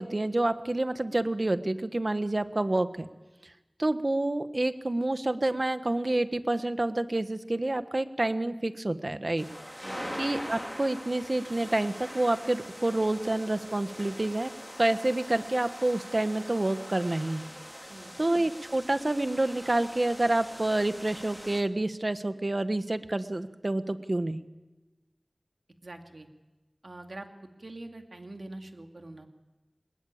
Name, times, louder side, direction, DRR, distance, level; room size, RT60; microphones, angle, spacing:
voice 1, 0.0-3.1 3.4-3.5 3.8-9.5 10.2-14.5 14.8-17.4 18.2-24.4, right 2 dB, 55° right, 11 dB, 1.4 m, -28 dB
sound 1, 9.4-21.6, equal, ahead, 2.8 m, -43 dB
voice 2, 25.8-26.3 26.8-27.3 27.6-29.3, right 2 dB, 75° right, 5 dB, 2.4 m, -44 dB
22.5 x 21.0 x 8.8 m, 1.1 s
wide cardioid pair, 40°, 0 cm